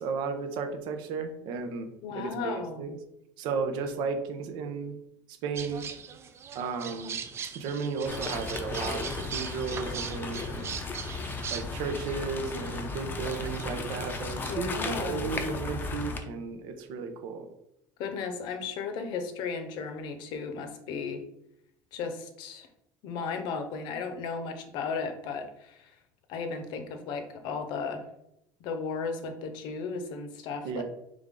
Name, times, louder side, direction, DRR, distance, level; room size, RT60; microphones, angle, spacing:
voice 1, 0.0-1.9 2.1-3.0 3.4-4.9 5.4-5.9 6.5-7.2 7.5-9.1 9.3-10.7 11.5-17.5 30.6-30.8, right 5 dB, 65° right, 6 dB, 0.7 m, -34 dB
voice 2, 2.0-2.8 14.4-15.4 18.0-21.2 21.9-22.7 23.0-25.9 26.3-28.0 28.6-30.8, left 5 dB, 65° left, 7 dB, 0.7 m, -35 dB
sound 1, 5.6-14.3, right 7 dB, 30° right, 0.4 m, -40 dB
sound 2, 8.1-16.2, left 3 dB, 25° left, 0.5 m, -35 dB
3.5 x 3.3 x 3.7 m, 0.81 s
cardioid pair, 135°, 8 cm